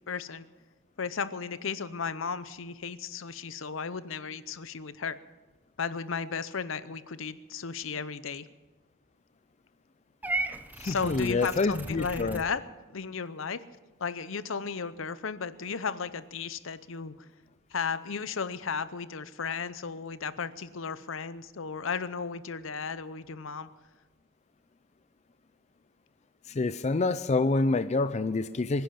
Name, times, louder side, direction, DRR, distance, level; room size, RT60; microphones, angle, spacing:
voice 1, 0.1-0.5 1.0-5.2 5.8-8.5 10.8-12.6 12.9-13.6 14.0-17.1 17.7-23.7, left 5 dB, 70° left, 14 dB, 0.7 m, -34 dB
Purr / Meow, 10.2-12.5, right 2 dB, 10° right, 0.6 m, -35 dB
voice 2, 10.8-12.4 26.5-28.8, left 3 dB, 35° left, 12 dB, 0.4 m, -27 dB
23.0 x 10.5 x 5.9 m, 1.2 s
head